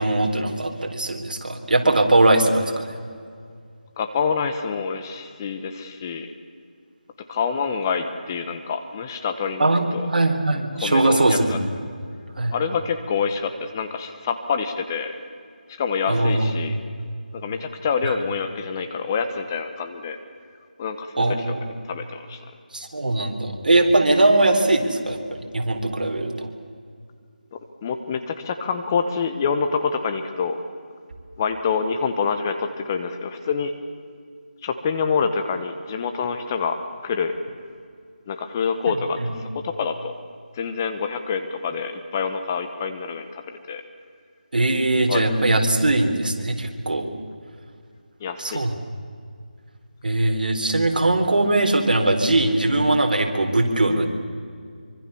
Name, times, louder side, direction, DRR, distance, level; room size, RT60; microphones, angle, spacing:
voice 1, 0.0-2.9 9.6-11.6 12.4-12.6 16.1-16.7 18.0-18.1 21.2-21.7 22.7-26.5 39.2-39.3 44.5-47.1 48.4-48.7 50.0-54.1, right 2 dB, 65° right, 4 dB, 3.9 m, -20 dB
voice 2, 4.0-6.3 7.3-10.1 10.8-11.6 12.5-15.2 15.8-16.7 17.3-20.2 20.8-21.5 21.9-22.4 27.5-30.6 31.4-33.7 34.6-37.3 38.3-40.1 40.5-43.8 45.1-45.2 48.2-48.7, left 5 dB, 20° left, 7 dB, 1.1 m, -26 dB
25.0 x 25.0 x 7.0 m, 2.2 s
figure-of-eight pair, 165°, 5 cm